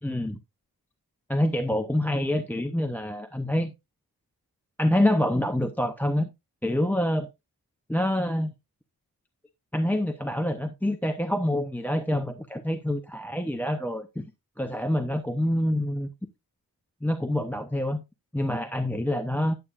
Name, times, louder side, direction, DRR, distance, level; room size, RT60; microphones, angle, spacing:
voice 1, 0.0-0.4 1.3-3.7 4.8-6.3 6.6-7.3 7.9-8.5 9.7-14.3 14.6-16.1 17.0-18.0 18.3-19.6, left 1 dB, 5° left, 0.7 m, -26 dB
9.8 x 9.2 x 2.5 m
wide cardioid pair, 85°, 38 cm